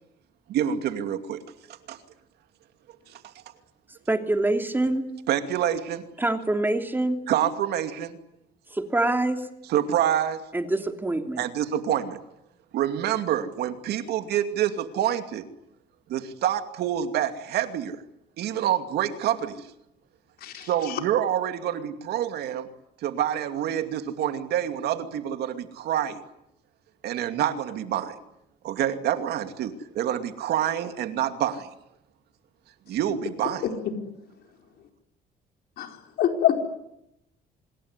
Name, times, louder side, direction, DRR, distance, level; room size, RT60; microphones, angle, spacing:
voice 1, 0.5-1.4 1.9-2.0 3.1-3.2 5.3-6.0 7.3-8.2 9.7-10.4 11.4-12.2 12.7-15.5 16.1-18.0 18.4-19.7 20.5-22.7 23.0-26.2 27.0-28.2 28.6-31.7 32.9-33.7, right 10 dB, 75° right, 2.6 m, -27 dB
voice 2, 4.1-5.0 6.2-7.2 8.7-9.4 10.5-11.4, right 2 dB, 10° right, 3.1 m, -25 dB
voice 3, 36.2-36.6, left 10 dB, 70° left, 4.6 m, -23 dB
26.0 x 21.0 x 9.8 m
cardioid pair, 110°, 17 cm